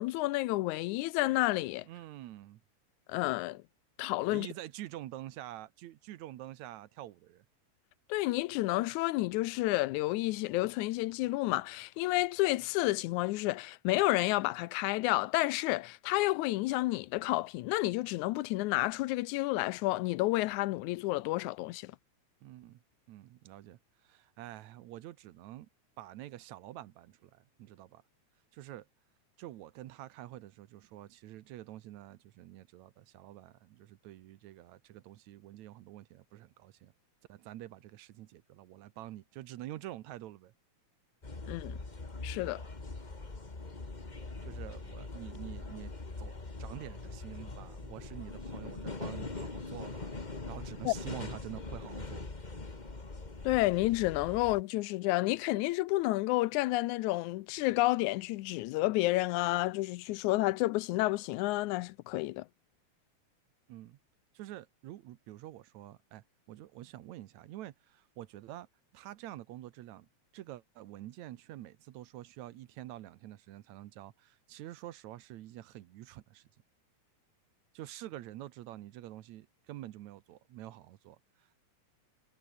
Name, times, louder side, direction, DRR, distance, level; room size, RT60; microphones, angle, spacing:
voice 1, 0.0-1.9 3.1-3.6 4.0-4.5 8.1-21.9 41.5-41.8 42.2-42.6 50.9-51.0 53.4-62.5, left 19 dB, 90° left, 2.1 m, -30 dB
voice 2, 1.8-2.6 4.3-7.5 22.4-25.7 26.0-28.0 28.5-28.9 29.4-36.9 37.3-40.5 44.4-45.9 46.2-50.1 50.5-52.3 63.7-64.0 64.3-68.7 68.9-70.1 70.3-76.5 77.7-81.6, right 14 dB, 75° right, 2.2 m, -47 dB
sound 1, 41.2-54.6, left 3 dB, 20° left, 1.6 m, -42 dB
omnidirectional pair, 3.3 m